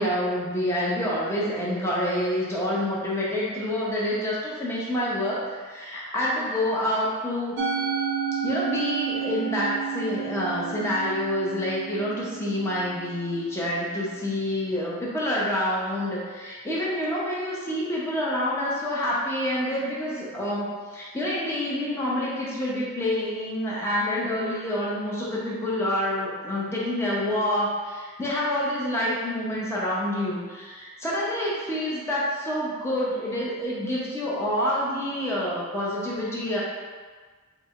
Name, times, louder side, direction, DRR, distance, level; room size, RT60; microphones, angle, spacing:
voice 1, 0.0-7.7 8.4-36.6, left 1 dB, 10° left, -7 dB, 0.8 m, -27 dB
Musical instrument, 7.6-14.0, right 8 dB, 55° right, 0.6 m, -31 dB
4.7 x 2.2 x 3.6 m, 1.5 s
head